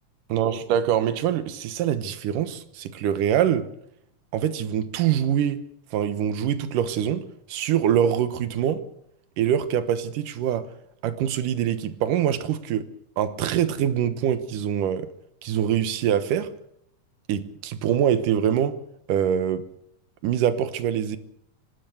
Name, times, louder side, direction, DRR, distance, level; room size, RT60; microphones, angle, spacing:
voice 1, 0.3-3.7 4.3-5.6 5.9-8.8 9.4-10.7 11.0-12.8 13.2-15.1 15.4-16.5 17.3-18.8 19.1-19.6 20.2-21.2, right 9 dB, 85° right, 2.7 m, -24 dB
25.5 x 13.0 x 8.0 m
omnidirectional pair, 3.7 m